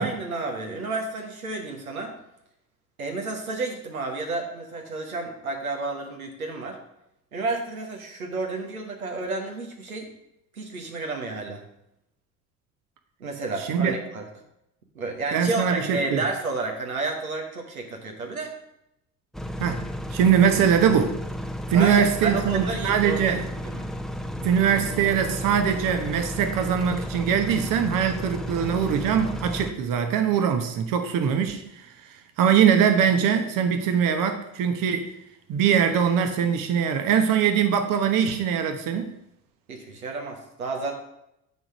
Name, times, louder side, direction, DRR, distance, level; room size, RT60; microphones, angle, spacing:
voice 1, 0.0-2.1 3.0-6.8 7.3-10.1 10.5-11.6 13.2-14.3 14.9-18.5 21.7-23.4 23.6-23.9 39.7-40.9, right 3 dB, 85° right, 1 dB, 1.3 m, -31 dB
voice 2, 15.3-16.2 19.6-19.9 20.1-21.2 21.7-23.4 24.4-35.1 35.5-39.1, right 8 dB, 50° right, 6 dB, 1.0 m, -22 dB
sound 1, 19.3-29.7, equal, ahead, 0.8 m, -33 dB
9.2 x 4.0 x 6.2 m, 0.82 s
figure-of-eight pair, 55°, 41 cm